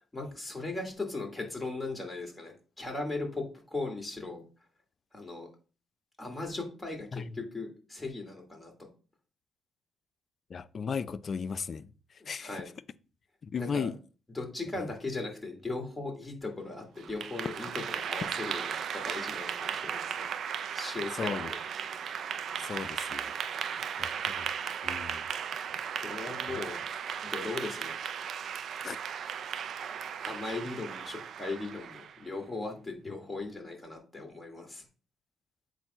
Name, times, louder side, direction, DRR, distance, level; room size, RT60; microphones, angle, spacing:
voice 1, 0.1-3.4 3.7-4.4 5.1-5.5 6.2-8.7 12.4-12.7 13.6-13.9 14.3-20.3 20.7-21.6 26.0-26.8 27.2-28.0 30.2-34.8, left 3 dB, 10° left, 2.5 m, -38 dB
voice 2, 10.5-11.9 12.3-12.6 13.5-14.0 21.2-21.5 22.6-23.3 24.0-24.5 24.8-25.2 26.5-26.6 28.8-29.0, left 6 dB, 45° left, 0.4 m, -35 dB
Clapping / Applause, 17.0-32.2, right 7 dB, 65° right, 0.4 m, -36 dB
7.4 x 2.7 x 5.4 m
cardioid pair, 90°, 0 cm